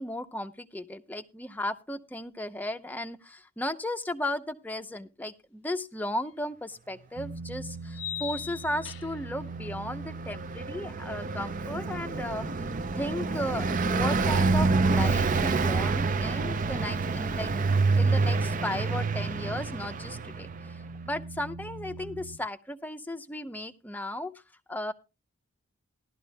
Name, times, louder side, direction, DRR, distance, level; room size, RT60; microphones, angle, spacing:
voice 1, 0.0-12.6 13.0-24.3 24.7-24.9, left 1 dB, 10° left, 8 dB, 0.6 m, -35 dB
sound 1, 6.3-6.4 7.9-9.4, left 11 dB, 65° left, 0.6 m, -39 dB
sound 2, 7.2-22.4, right 3 dB, 85° right, 0.7 m, -42 dB
Car passing by, 9.5-20.6, right 3 dB, 35° right, 0.5 m, -27 dB
17.5 x 12.0 x 2.2 m, 0.28 s
head